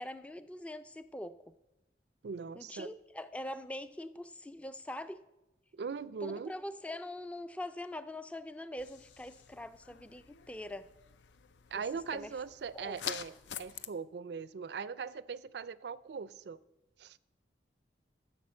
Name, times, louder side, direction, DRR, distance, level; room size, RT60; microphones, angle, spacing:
voice 1, 0.0-1.4 2.6-5.2 6.2-10.9 11.7-11.8 12.1-12.3 12.7-13.2, left 1 dB, 5° left, 0.3 m, -43 dB
voice 2, 2.2-2.9 5.7-6.5 11.7-16.6 17.0-17.2, right 5 dB, 70° right, 0.4 m, -40 dB
sound 1, 8.8-13.9, left 9 dB, 90° left, 0.5 m, -46 dB
11.5 x 6.3 x 7.6 m
head